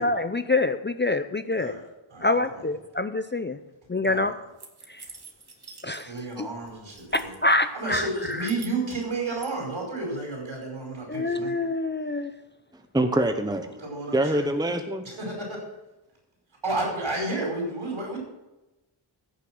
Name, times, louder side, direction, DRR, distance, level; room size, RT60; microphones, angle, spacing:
voice 1, 0.0-1.8 2.2-3.6 3.9-4.3 4.9-5.0 5.8-6.5 7.1-8.5 11.1-12.3, left 2 dB, 25° left, 0.5 m, -26 dB
voice 2, 2.1-2.6 4.0-4.3 6.0-7.3 7.7-11.5 13.8-14.5 15.0-15.6 16.6-18.2, right 2 dB, 70° right, 5.1 m, -31 dB
sound 1, 4.6-6.3 6.6-7.5 8.0-9.5, right 5 dB, 50° right, 1.7 m, -47 dB
voice 3, 12.7-13.7 14.1-15.0, right 1 dB, 10° right, 0.9 m, -25 dB
15.0 x 6.9 x 6.2 m
wide cardioid pair, 85°, 49 cm